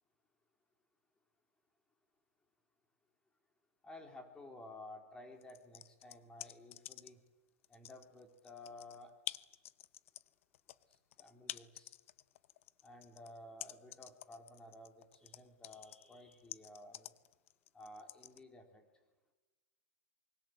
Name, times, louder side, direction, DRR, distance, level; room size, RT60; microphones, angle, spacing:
voice 1, 3.8-7.2 7.7-9.1 11.2-11.9 12.8-17.1 17.7-18.8, left 2 dB, 10° left, 5 dB, 3.8 m, -54 dB
sound 1, 5.4-7.3 7.6-18.4, left 14 dB, 70° left, 0.9 m, -49 dB
25.5 x 23.5 x 8.0 m, 1.2 s
supercardioid pair, 150°, 7 cm